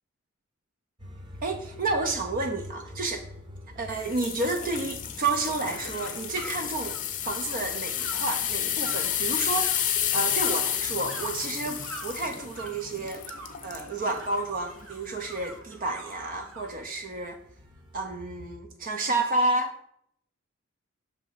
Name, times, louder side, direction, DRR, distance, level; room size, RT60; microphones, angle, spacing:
sound 1, 1.0-18.6, left 1 dB, 25° right, 0.9 m, -48 dB
voice 1, 1.4-3.3 3.8-7.0 7.2-13.2 13.6-17.4 17.9-19.8, right 2 dB, 45° right, 5 dB, 0.5 m, -30 dB
sound 2, 4.0-13.9 14.4-14.6 15.2-15.3, left 10 dB, 40° left, 0.6 m, -31 dB
sound 3, 5.7-16.7, right 3 dB, 70° right, 0.8 m, -46 dB
6.0 x 3.3 x 5.5 m, 0.73 s
head